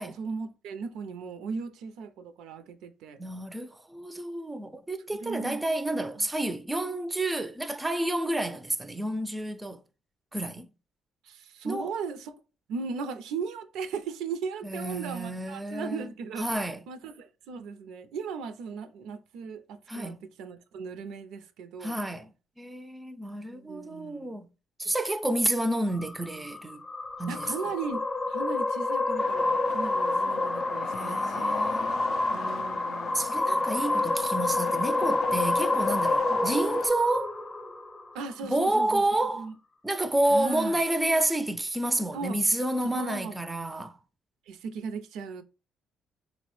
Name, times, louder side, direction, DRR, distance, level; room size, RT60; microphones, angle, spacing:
voice 1, 0.0-3.2 5.2-5.6 11.3-12.4 12.7-16.5 16.9-22.0 23.5-24.3 27.3-31.5 32.3-33.3 33.5-33.9 36.3-36.4 38.1-39.1 39.4-39.5 40.3-40.8 42.1-42.4 42.8-43.4 44.5-45.4, right 5 dB, 80° right, 0.4 m, -37 dB
voice 2, 3.2-9.8 10.3-10.7 11.6-11.9 14.6-16.1 16.4-16.8 19.9-20.2 21.8-22.3 22.6-24.5 24.8-26.8 27.2-27.5 30.8-32.1 33.1-37.3 38.5-39.5 39.8-44.0, right 1 dB, 15° right, 0.3 m, -29 dB
sound 1, 25.9-38.4, left 2 dB, 25° left, 0.6 m, -28 dB
sound 2, 29.2-36.9, left 7 dB, 70° left, 0.4 m, -40 dB
3.8 x 2.0 x 3.0 m
cardioid pair, 85°, 0 cm